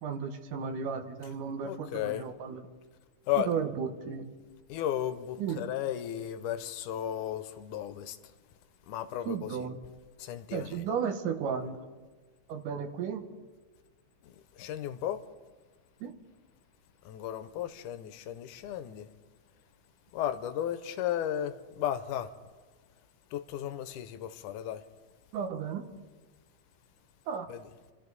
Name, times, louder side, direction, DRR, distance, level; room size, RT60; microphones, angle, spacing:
voice 1, 0.0-2.6 3.4-4.3 5.4-5.7 9.2-9.8 10.5-11.8 12.5-13.2 16.0-16.1 25.3-25.8 27.3-27.5, right 6 dB, 85° right, 2.7 m, -34 dB
voice 2, 1.6-2.3 3.3-3.5 4.7-8.2 8.9-9.7 10.2-10.9 14.2-15.2 17.1-19.1 20.1-22.3 23.3-24.8 27.5-27.6, left 11 dB, 85° left, 2.2 m, -34 dB
27.0 x 13.5 x 4.0 m
omnidirectional pair, 3.6 m